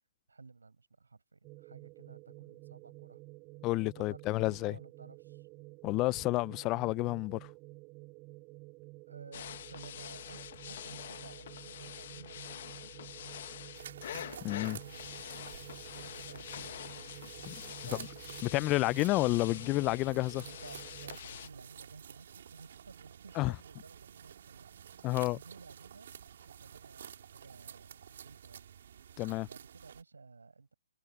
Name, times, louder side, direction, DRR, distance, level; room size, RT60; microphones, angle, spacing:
voice 1, 0.3-3.2 3.8-5.5 9.1-10.4 10.7-13.3 14.7-15.2 15.8-17.1 17.8-18.1 18.4-18.6 20.5-24.7 24.9-25.0 25.3-26.1 26.5-28.7 29.5-30.7, right 4 dB, 90° right, 7.5 m, -54 dB
sound 1, 1.4-21.2, right 25 dB, 25° right, 7.3 m, -52 dB
voice 2, 3.6-4.7 5.8-7.4 14.4-14.8 17.5-17.6 18.5-20.4 23.4-23.5 25.0-25.4 29.2-29.5, left 20 dB, 25° left, 0.3 m, -30 dB
sound 2, 9.3-21.5, left 10 dB, 50° left, 1.1 m, -46 dB
sound 3, 13.7-30.0, right 8 dB, 60° right, 3.8 m, -51 dB
hypercardioid pair, 145°, 0 cm